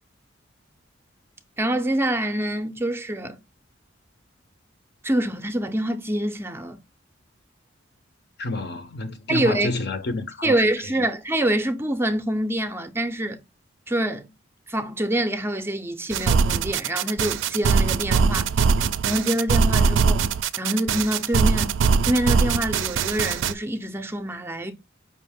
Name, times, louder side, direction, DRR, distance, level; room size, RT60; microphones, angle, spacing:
voice 1, 1.6-3.4 5.0-6.8 9.3-9.7 10.4-13.4 13.9-14.3 14.7-18.5 19.0-20.3 20.6-24.7, right 1 dB, 10° right, 0.4 m, -25 dB
voice 2, 8.4-10.6, left 2 dB, 55° left, 0.7 m, -29 dB
sound 1, 16.1-23.5, right 5 dB, 75° right, 0.4 m, -21 dB
5.3 x 2.5 x 3.4 m
head